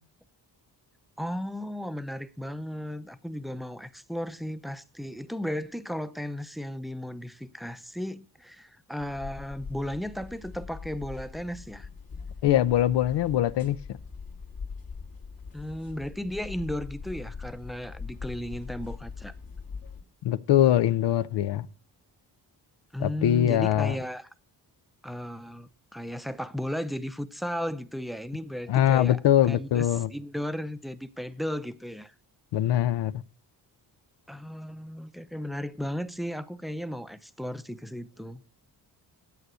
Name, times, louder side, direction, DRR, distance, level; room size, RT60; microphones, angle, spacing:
voice 1, 1.2-11.9 15.5-19.3 22.9-24.3 25.0-32.1 34.3-38.4, equal, ahead, 0.6 m, -35 dB
sound 1, 9.0-20.0, left 5 dB, 55° left, 2.0 m, -42 dB
voice 2, 12.4-13.8 20.2-21.7 23.0-23.9 28.7-30.1 32.5-33.1, left 12 dB, 90° left, 0.7 m, -22 dB
9.4 x 8.3 x 6.2 m
cardioid pair, 105°, 41 cm